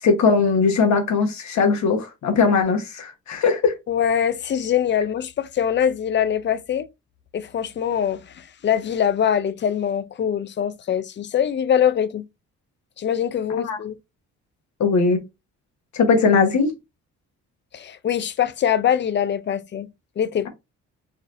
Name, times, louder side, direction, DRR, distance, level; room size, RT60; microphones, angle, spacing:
voice 1, 0.0-3.7 13.6-13.8 14.8-15.2 15.9-16.7, left 4 dB, 65° left, 1.3 m, -19 dB
voice 2, 3.9-6.9 7.3-12.3 13.0-14.0 17.7-19.9 20.2-20.5, left 9 dB, 40° left, 0.5 m, -23 dB
4.1 x 2.7 x 2.5 m
cardioid pair, 90°, 30 cm